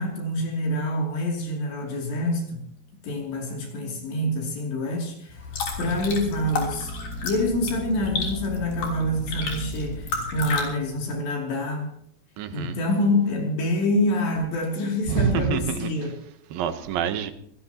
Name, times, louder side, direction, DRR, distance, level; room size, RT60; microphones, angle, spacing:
voice 1, 0.0-2.7 3.0-5.4 5.8-6.9 7.2-11.9 12.5-16.2, left 1 dB, 70° left, 5.0 m, -26 dB
sound 1, 5.3-10.6, left 4 dB, 55° left, 4.8 m, -32 dB
sound 2, 5.3-11.2, right 1 dB, 25° left, 6.3 m, -38 dB
voice 2, 12.4-12.8 15.1-15.9 16.5-17.3, right 8 dB, 70° right, 2.4 m, -26 dB
25.0 x 17.5 x 2.9 m
omnidirectional pair, 5.2 m